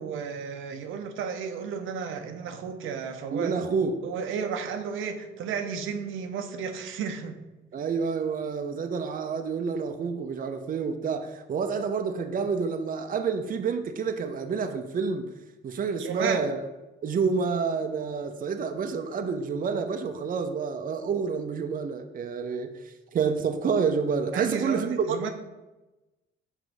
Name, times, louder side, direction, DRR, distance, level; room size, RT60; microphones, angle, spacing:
voice 1, 0.0-3.6 4.0-7.4 16.0-16.5 24.3-25.3, right 6 dB, 85° right, 0.8 m, -33 dB
voice 2, 3.3-4.0 7.7-15.3 15.6-16.6 17.0-22.7 23.1-25.2, right 5 dB, 45° right, 0.7 m, -28 dB
6.1 x 4.5 x 5.2 m
cardioid pair, 90°, 20 cm